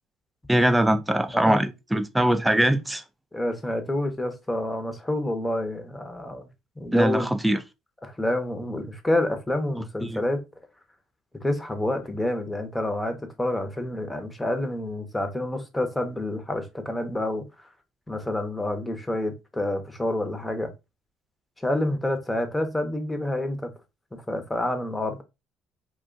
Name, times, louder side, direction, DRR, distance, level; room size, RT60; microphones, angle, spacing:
voice 1, 0.5-3.0 6.9-7.6 10.0-10.2, right 1 dB, 5° right, 0.4 m, -22 dB
voice 2, 3.3-6.5 6.8-7.3 8.0-10.4 11.4-17.7 18.1-20.7 21.6-23.7 24.1-25.2, left 1 dB, 10° left, 0.9 m, -28 dB
2.4 x 2.3 x 3.8 m
supercardioid pair, 80°, 0 cm